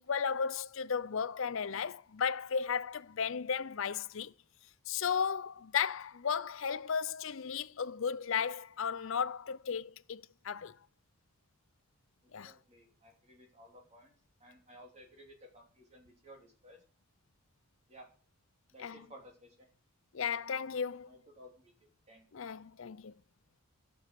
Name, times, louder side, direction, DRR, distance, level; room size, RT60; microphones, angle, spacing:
voice 1, 0.0-4.3 4.9-10.8 12.3-12.6 18.8-19.0 20.1-21.1 22.3-23.1, left 6 dB, 65° left, 0.5 m, -35 dB
voice 2, 12.2-16.8 17.9-18.1 18.7-19.7 21.1-21.7 22.1-22.3, equal, 30° right, 3.2 m, -56 dB
13.0 x 7.2 x 7.4 m
head